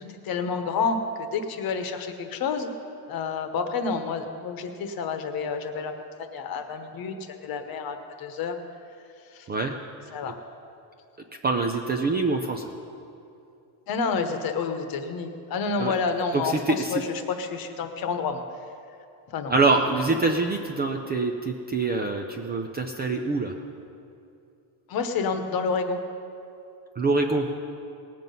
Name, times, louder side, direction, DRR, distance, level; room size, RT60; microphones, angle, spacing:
voice 1, 0.0-2.7 3.1-5.9 6.3-7.1 7.4-8.6 9.3-9.5 10.1-10.4 13.9-18.4 19.3-19.5 24.9-26.0, left 5 dB, 45° left, 7 dB, 1.1 m, -29 dB
voice 2, 11.4-12.6 15.8-15.9 16.3-17.0 19.5-23.5 27.0-27.5, right 3 dB, 20° right, 3 dB, 0.4 m, -25 dB
19.0 x 7.5 x 5.4 m, 2.6 s
cardioid pair, 155°, 49 cm